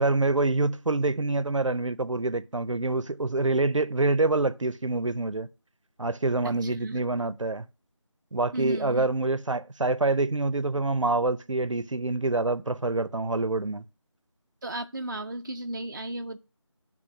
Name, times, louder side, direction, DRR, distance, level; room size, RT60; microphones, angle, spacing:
voice 1, 0.0-5.5 6.0-7.7 8.3-13.8, right 2 dB, 85° right, 0.6 m, -26 dB
voice 2, 6.4-7.0 8.5-9.1 14.6-16.4, right 1 dB, 40° right, 0.4 m, -34 dB
10.0 x 3.6 x 5.0 m
figure-of-eight pair, 170°, 16 cm